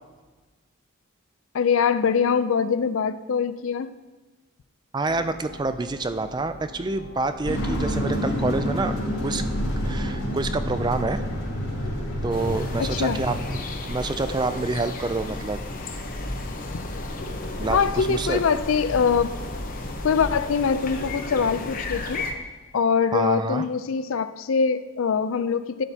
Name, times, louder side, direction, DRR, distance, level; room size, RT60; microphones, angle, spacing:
voice 1, 1.5-3.9 12.8-13.2 17.7-19.3 20.0-22.2 22.7-25.8, left 6 dB, 70° left, 13 dB, 0.4 m, -23 dB
voice 2, 4.9-8.9 9.2-9.4 9.8-11.2 12.2-13.4 13.8-15.6 17.6-18.4 23.1-23.6, right 3 dB, 20° right, 10 dB, 0.3 m, -27 dB
sound 1, 5.0-11.7, left 1 dB, 50° right, 3.1 m, -44 dB
sound 2, 7.4-13.6, equal, 90° left, 3.0 m, -28 dB
sound 3, 12.3-22.3, left 2 dB, 40° left, 0.9 m, -33 dB
12.0 x 9.0 x 2.8 m, 1.3 s
head